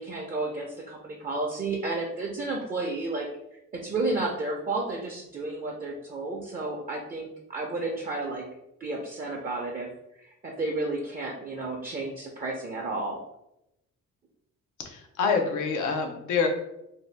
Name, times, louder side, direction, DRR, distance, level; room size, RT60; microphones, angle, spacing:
voice 1, 0.0-3.3 3.7-8.4 8.8-9.9 10.2-13.2, right 2 dB, 30° right, 0 dB, 0.5 m, -32 dB
voice 2, 14.8-16.5, left 5 dB, 90° left, 3 dB, 0.6 m, -26 dB
2.7 x 2.2 x 3.2 m, 0.85 s
cardioid pair, 90°, 30 cm